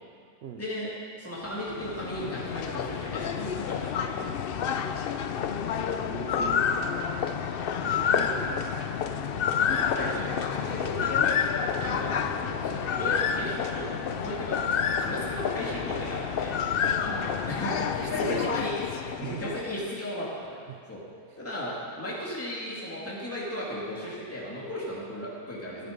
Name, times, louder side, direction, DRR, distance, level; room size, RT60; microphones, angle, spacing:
voice 1, 0.6-0.9 1.2-4.3 9.6-13.9 14.2-14.6 15.0-16.5 17.0-18.7 19.2-20.6 20.9-21.0 21.4-25.9, equal, 10° left, -6 dB, 2.5 m, -36 dB
sound 1, 1.5-19.9, left 7 dB, 75° left, 0.5 m, -29 dB
voice 2, 5.7-6.9 7.8-8.8 13.4-13.6 16.6-17.1 18.0-19.6 20.7-20.8 21.2-21.4, right 6 dB, 65° right, 7 dB, 0.6 m, -41 dB
13.5 x 11.0 x 5.2 m, 2.2 s
omnidirectional pair, 1.7 m